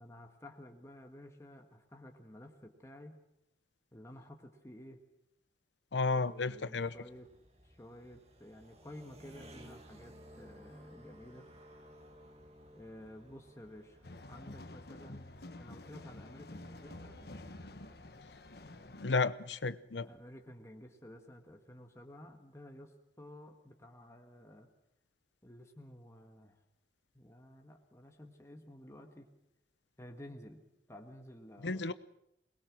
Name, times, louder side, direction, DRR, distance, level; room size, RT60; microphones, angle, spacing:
voice 1, 0.0-3.2 3.9-5.0 6.1-7.3 7.6-11.5 12.7-17.2 20.0-24.7 25.4-26.6 27.1-29.3 30.0-30.6 30.9-31.9, left 1 dB, 15° left, 3 dB, 1.7 m, -53 dB
voice 2, 5.9-6.9 19.0-20.1 31.6-31.9, left 3 dB, 90° left, 16 dB, 0.8 m, -32 dB
sound 1, 6.3-17.7, equal, 35° right, 2.1 m, -58 dB
sound 2, 14.0-19.1, left 2 dB, 60° left, 1.3 m, -49 dB
sound 3, 16.6-20.5, right 1 dB, 80° right, 5.4 m, -61 dB
22.5 x 21.0 x 6.2 m, 0.81 s
head